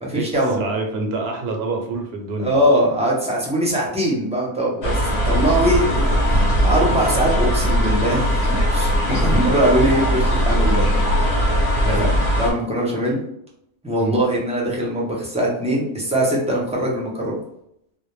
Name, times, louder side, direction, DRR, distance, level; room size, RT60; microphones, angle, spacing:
voice 1, 0.0-0.6 2.4-8.2 8.7-10.9 11.8-12.1 12.4-13.2 13.8-17.4, equal, 10° right, -4 dB, 0.5 m, -21 dB
voice 2, 0.6-2.6 5.8-5.9 9.3-9.4 11.8-12.1 14.0-14.2, right 3 dB, 75° right, 3 dB, 0.8 m, -26 dB
sound 1, 4.8-12.5, equal, 85° left, 1.0 m, -19 dB
2.2 x 2.0 x 3.0 m, 0.75 s
omnidirectional pair, 1.1 m